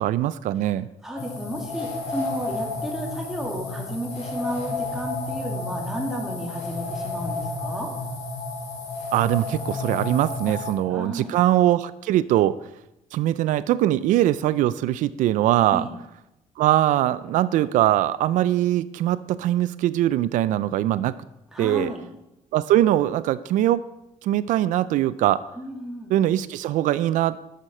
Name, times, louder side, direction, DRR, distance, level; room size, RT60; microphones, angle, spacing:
voice 1, 0.0-0.9 9.1-12.6 13.1-15.9 16.6-21.2 21.6-21.9 22.5-23.8 24.2-25.4 26.1-27.4, right 13 dB, 80° right, 15 dB, 0.4 m, -22 dB
voice 2, 1.0-7.9 10.5-10.6 10.9-11.4 15.7-15.9 21.5-22.0 25.6-26.1, equal, 5° right, -1 dB, 2.3 m, -33 dB
sound 1, 1.2-10.7, left 3 dB, 65° left, 3.2 m, -31 dB
11.5 x 6.4 x 4.3 m, 0.91 s
cardioid pair, 105°, 13 cm